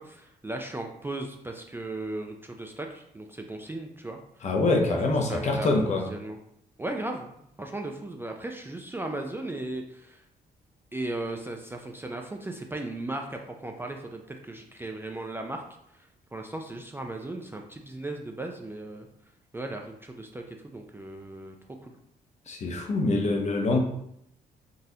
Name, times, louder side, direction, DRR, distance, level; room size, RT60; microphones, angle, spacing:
voice 1, 0.0-4.2 4.9-6.4 6.8-7.3 7.6-10.2 10.9-15.6 15.9-19.1 19.5-22.0, right 2 dB, 15° right, 3 dB, 0.3 m, -37 dB
voice 2, 4.4-6.1 22.5-23.8, left 2 dB, 45° left, 2 dB, 0.7 m, -25 dB
3.9 x 2.5 x 2.7 m, 0.75 s
cardioid pair, 95°, 17 cm